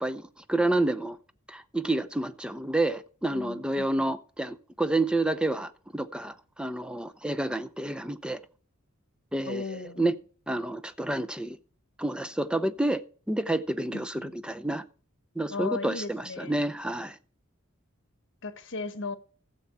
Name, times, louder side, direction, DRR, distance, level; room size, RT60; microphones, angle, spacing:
voice 1, 0.0-1.2 1.5-8.4 9.3-9.6 10.0-10.1 10.5-11.6 12.0-13.0 13.3-14.8 15.4-17.2, right 2 dB, 5° right, 0.7 m, -29 dB
voice 2, 3.3-4.1 9.4-10.1 13.9-14.3 15.5-16.6 18.4-19.2, left 3 dB, 60° left, 1.3 m, -37 dB
15.5 x 7.4 x 4.3 m
head